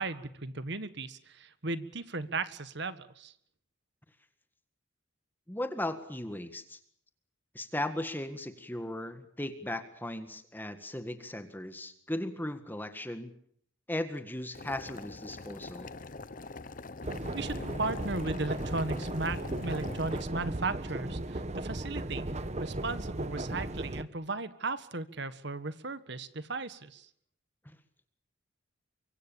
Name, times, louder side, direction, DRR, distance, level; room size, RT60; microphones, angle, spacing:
voice 1, 0.0-3.3 17.3-27.1, right 3 dB, 60° right, 13 dB, 1.6 m, -36 dB
voice 2, 5.5-6.8 7.5-13.3 13.9-15.9, left 1 dB, 10° left, 8 dB, 1.8 m, -37 dB
Boiling, 14.5-20.2, left 3 dB, 45° left, 1.0 m, -43 dB
sound 1, 17.0-24.0, right 1 dB, 35° right, 1.1 m, -36 dB
24.5 x 23.5 x 7.0 m, 0.64 s
head